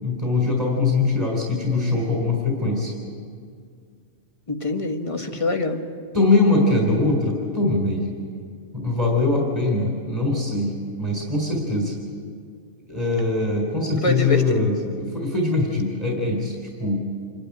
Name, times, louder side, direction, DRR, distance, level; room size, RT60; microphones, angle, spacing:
voice 1, 0.0-2.9 5.2-5.4 6.1-8.1 8.7-12.0 12.9-17.0, left 2 dB, 20° right, -2 dB, 3.6 m, -22 dB
voice 2, 4.5-5.8 14.0-14.7, left 2 dB, 25° left, 4 dB, 1.4 m, -25 dB
27.5 x 12.0 x 9.8 m, 2.2 s
omnidirectional pair, 1.4 m